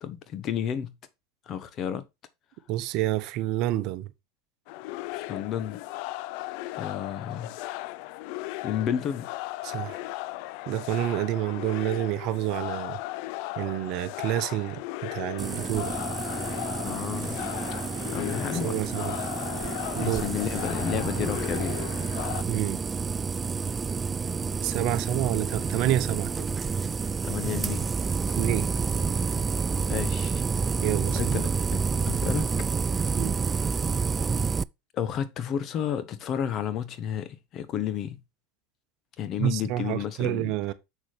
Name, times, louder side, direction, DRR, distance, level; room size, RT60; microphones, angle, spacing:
voice 1, 0.0-0.9 1.5-2.0 5.1-5.8 6.7-7.5 8.6-9.3 16.8-17.4 18.1-18.8 19.5-21.8 27.2-27.9 28.3-28.4 29.9-30.4 31.1-32.5 32.9-33.2 34.9-38.2 39.2-40.5, left 9 dB, 45° left, 1.1 m, -32 dB
voice 2, 2.7-4.1 9.6-10.0 10.7-13.0 13.6-16.0 18.5-19.1 19.9-20.3 22.5-22.8 24.6-26.5 28.4-28.7 30.8-31.4 33.1-33.4 39.4-40.7, right 14 dB, 55° right, 0.9 m, -28 dB
sound 1, 4.7-22.4, left 18 dB, 60° left, 0.4 m, -36 dB
sound 2, 15.4-34.6, right 5 dB, 20° right, 0.3 m, -29 dB
7.2 x 6.4 x 3.2 m
hypercardioid pair, 95°, 0 cm